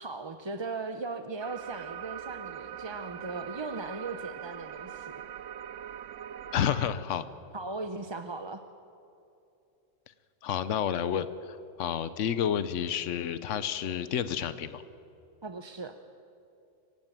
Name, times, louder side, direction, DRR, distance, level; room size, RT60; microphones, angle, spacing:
voice 1, 0.0-5.1 7.5-8.6 15.4-16.0, right 3 dB, 25° right, 8 dB, 0.7 m, -38 dB
sound 1, 1.4-6.9, right 10 dB, 75° right, 1.1 m, -42 dB
voice 2, 6.5-7.3 10.4-14.8, left 9 dB, 75° left, 13 dB, 1.1 m, -30 dB
25.5 x 16.0 x 9.1 m, 2.7 s
omnidirectional pair, 1.3 m